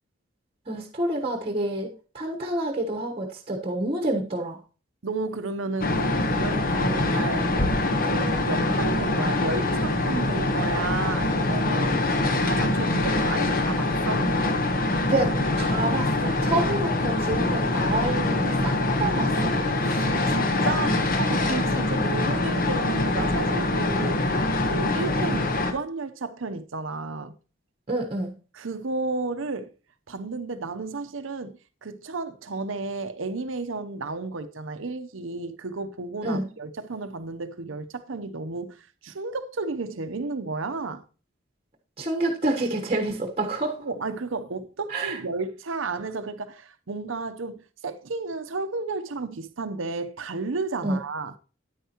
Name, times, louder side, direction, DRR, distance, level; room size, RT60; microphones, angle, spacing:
voice 1, 0.7-4.6 15.1-19.5 27.9-28.3 36.2-36.5 42.0-43.8 44.9-45.2 50.8-51.0, right 2 dB, 30° right, 1.1 m, -28 dB
voice 2, 5.0-7.5 8.0-12.0 12.4-14.3 17.5-17.6 19.8-27.3 28.5-29.7 30.1-41.0 43.8-51.3, right 3 dB, 70° right, 0.7 m, -33 dB
sound 1, 5.8-25.7, left 2 dB, 45° left, 1.0 m, -24 dB
9.4 x 9.2 x 2.9 m
head